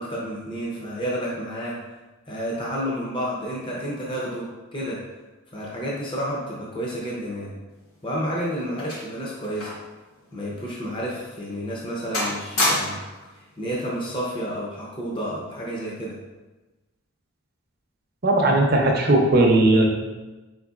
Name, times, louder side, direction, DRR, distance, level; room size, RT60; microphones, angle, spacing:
voice 1, 0.0-1.8 2.3-5.0 5.5-7.5 8.0-9.7 10.3-13.0 13.3-16.2, equal, 20° left, -5 dB, 0.6 m, -30 dB
sound 1, 7.8-10.0 10.2-10.4 11.0-11.2 11.6-11.9 12.1-13.2 14.2-14.5, left 1 dB, 65° left, 1.3 m, -28 dB
voice 2, 18.2-19.9, right 2 dB, 45° right, 1 dB, 0.6 m, -17 dB
4.4 x 3.9 x 2.4 m, 1.2 s
head